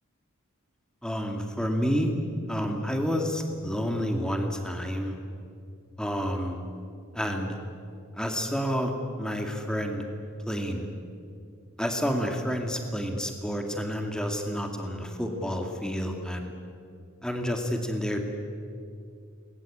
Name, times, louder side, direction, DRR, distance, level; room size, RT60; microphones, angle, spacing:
voice 1, 1.0-2.2 2.5-5.1 6.0-6.6 7.1-7.6 8.1-8.9 9.2-10.0 10.5-10.9 11.8-16.5 17.2-18.2, equal, 5° left, 3 dB, 2.2 m, -29 dB
29.0 x 21.0 x 8.7 m, 2.5 s
head